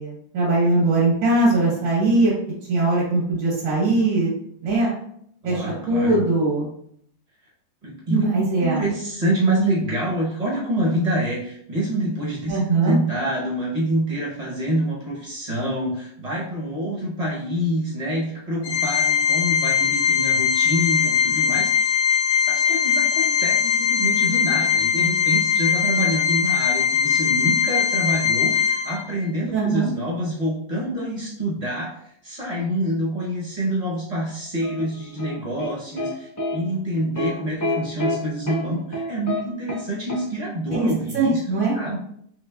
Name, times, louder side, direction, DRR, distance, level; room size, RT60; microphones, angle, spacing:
voice 1, 0.0-2.3 2.7-4.3 4.6-4.9 5.4-6.7 8.1-8.8 12.5-13.0 29.5-29.9 40.7-41.8, right 2 dB, 85° right, -5 dB, 1.7 m, -21 dB
voice 2, 5.4-6.2 7.8-8.2 8.6-22.0 22.5-31.9 32.2-41.4 41.7-42.0, right 1 dB, 50° right, -4 dB, 0.4 m, -26 dB
Organ, 18.6-29.3, left 7 dB, 70° left, 0.7 m, -21 dB
sound 1, 34.6-36.1 36.4-36.5 37.1-37.3 37.6-38.1 38.5-38.6 38.9-39.4 39.7-39.8 40.1-40.2, left 1 dB, 25° left, 0.3 m, -27 dB
3.8 x 3.1 x 2.2 m, 0.68 s
omnidirectional pair, 1.9 m